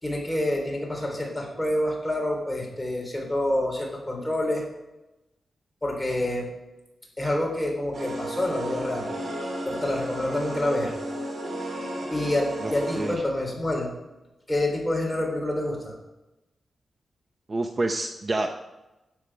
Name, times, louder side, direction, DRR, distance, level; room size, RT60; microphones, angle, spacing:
voice 1, 0.0-4.6 5.8-6.5 7.2-9.1 9.7-10.9 12.1-13.9 14.5-15.9, left 1 dB, 10° left, -1 dB, 3.6 m, -27 dB
sound 1, 7.9-13.1, right 1 dB, 75° right, 3.7 m, -33 dB
voice 2, 12.6-13.2 17.5-18.5, right 2 dB, 30° right, 5 dB, 0.7 m, -28 dB
12.0 x 7.5 x 4.9 m, 0.98 s
wide cardioid pair, 130°, 0 cm